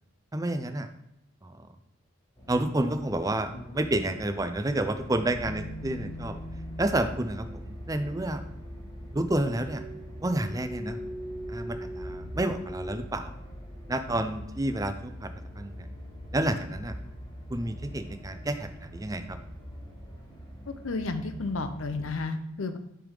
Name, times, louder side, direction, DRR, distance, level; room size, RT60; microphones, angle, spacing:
voice 1, 0.3-0.9 1.4-1.7 2.5-6.4 6.8-8.4 9.1-9.8 10.2-11.0 11.5-13.3 13.9-15.9 16.3-17.0 17.5-19.4, right 1 dB, 15° right, 8 dB, 0.5 m, -30 dB
sound 1, 2.4-22.1, equal, 20° left, 1.4 m, -41 dB
voice 2, 20.8-22.8, left 3 dB, 85° left, 9 dB, 0.7 m, -32 dB
7.0 x 3.5 x 4.9 m, 0.84 s
head